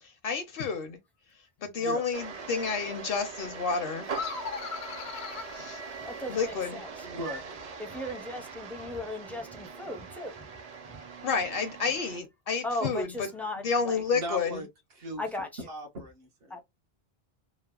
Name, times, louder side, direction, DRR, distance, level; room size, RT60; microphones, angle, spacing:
voice 1, 0.0-1.0 1.6-4.1 5.6-5.8 6.3-6.8 11.2-13.1 13.6-14.6, left 5 dB, 65° left, 0.8 m, -30 dB
voice 2, 1.8-2.1 7.0-7.5 14.1-14.7 15.0-16.6, equal, 70° right, 1.2 m, -38 dB
sound 1, 2.1-12.2, right 5 dB, 50° right, 0.5 m, -42 dB
sound 2, 4.1-6.6, left 6 dB, 90° left, 0.9 m, -39 dB
voice 3, 6.0-7.1 7.8-10.6 10.8-11.0 12.6-14.0 15.2-15.6 16.5-16.6, left 1 dB, ahead, 0.4 m, -37 dB
3.2 x 2.0 x 2.3 m
omnidirectional pair, 1.0 m